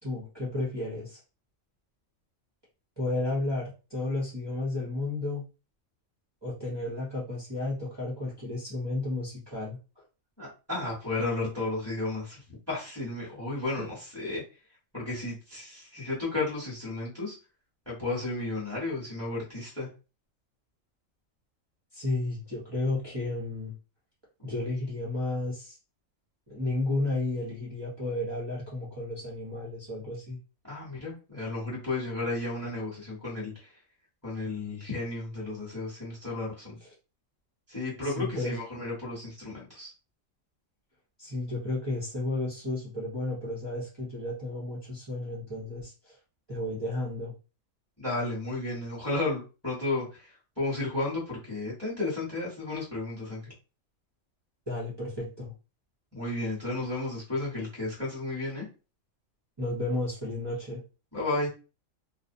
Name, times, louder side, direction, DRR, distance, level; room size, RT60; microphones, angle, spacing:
voice 1, 0.0-1.2 3.0-5.4 6.4-9.8 13.8-13.9 21.9-23.7 24.4-25.8 26.5-30.4 38.0-38.5 41.2-46.2 46.5-47.3 54.7-55.5 59.6-60.8, left 2 dB, 25° right, -7 dB, 0.6 m, -32 dB
voice 2, 10.4-14.4 14.9-17.3 17.9-19.9 30.6-33.7 34.2-36.8 37.7-39.9 48.0-53.4 56.1-58.6 61.1-61.5, left 2 dB, 15° left, -4 dB, 0.9 m, -33 dB
2.6 x 2.0 x 2.5 m, 0.32 s
omnidirectional pair, 1.4 m